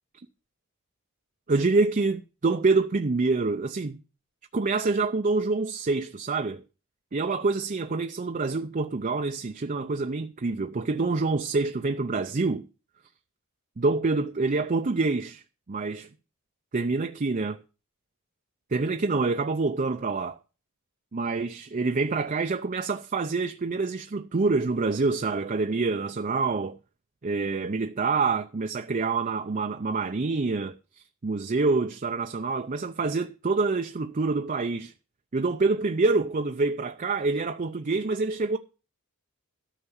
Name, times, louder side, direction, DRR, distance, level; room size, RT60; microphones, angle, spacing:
voice 1, 1.5-4.0 4.5-6.6 7.1-12.6 13.8-15.4 15.7-16.1 16.7-17.6 18.7-20.4 21.1-26.8 27.2-34.9 35.3-38.6, right 3 dB, 35° right, 0.5 m, -26 dB
13.0 x 5.8 x 7.1 m
head